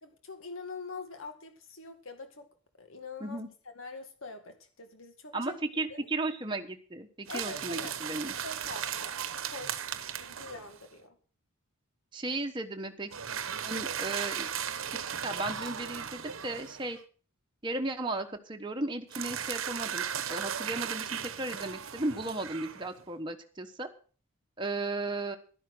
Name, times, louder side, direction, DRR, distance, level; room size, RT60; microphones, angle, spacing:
voice 1, 0.0-2.5 2.8-5.6 5.9-6.0 7.3-7.9 8.4-9.8 10.2-11.2, left 3 dB, 65° left, 6 dB, 2.1 m, -44 dB
voice 2, 5.3-8.3 12.1-13.1 13.6-14.5 15.2-17.0 17.6-23.9 24.6-25.4, right 2 dB, 20° right, 4 dB, 1.2 m, -35 dB
sound 1, 7.3-10.8 13.1-17.0 19.1-23.0, right 8 dB, 65° right, 1.0 m, -36 dB
12.0 x 11.0 x 6.1 m, 0.41 s
head